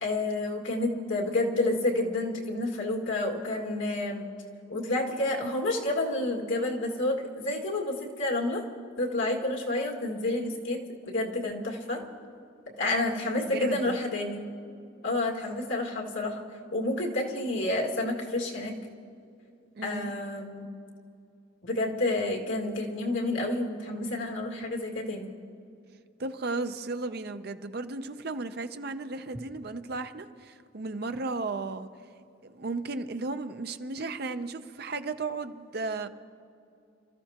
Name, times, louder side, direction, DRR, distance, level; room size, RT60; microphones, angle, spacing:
voice 1, 0.0-4.3 4.7-8.6 9.0-12.0 12.8-14.4 15.0-16.4 16.7-18.7 19.8-20.7 21.6-25.3, left 2 dB, 80° left, -1 dB, 2.1 m, -29 dB
voice 2, 12.8-14.0 19.8-20.1 26.2-31.9 32.4-36.1, right 3 dB, 55° right, 9 dB, 0.6 m, -35 dB
28.5 x 14.0 x 2.9 m, 2.4 s
head